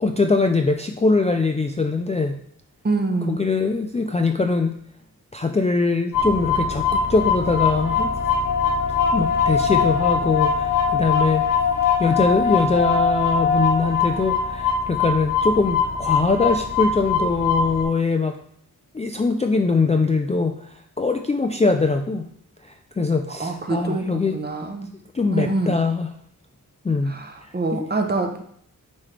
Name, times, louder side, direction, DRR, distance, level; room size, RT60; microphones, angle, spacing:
voice 1, 0.0-2.4 3.3-4.7 5.3-8.1 9.1-11.5 12.0-18.4 18.9-22.3 22.6-24.4 25.1-26.1 26.8-27.9, left 3 dB, 20° left, 4 dB, 0.3 m, -22 dB
voice 2, 2.8-3.4 23.4-24.9 25.3-25.8 27.1-28.4, right 3 dB, 30° right, 5 dB, 0.7 m, -25 dB
sound 1, 6.1-17.8, left 5 dB, 65° left, 1.3 m, -22 dB
9.5 x 3.2 x 3.2 m, 0.65 s
wide cardioid pair, 130°, 34 cm